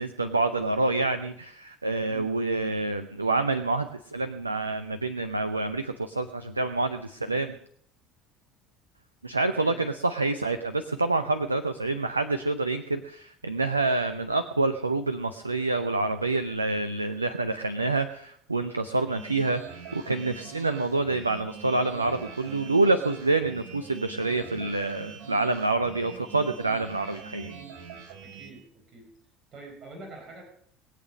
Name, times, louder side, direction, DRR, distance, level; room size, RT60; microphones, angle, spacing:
voice 1, 0.0-7.6 9.2-27.5, right 3 dB, 85° right, 10 dB, 0.6 m, -27 dB
voice 2, 9.5-9.9 24.5-24.7 28.2-29.1 29.5-30.4, right 2 dB, 40° right, 2 dB, 4.4 m, -46 dB
sound 1, 19.0-28.5, right 5 dB, 55° right, 3.2 m, -44 dB
21.0 x 8.5 x 6.3 m, 0.66 s
figure-of-eight pair, 65°, 0 cm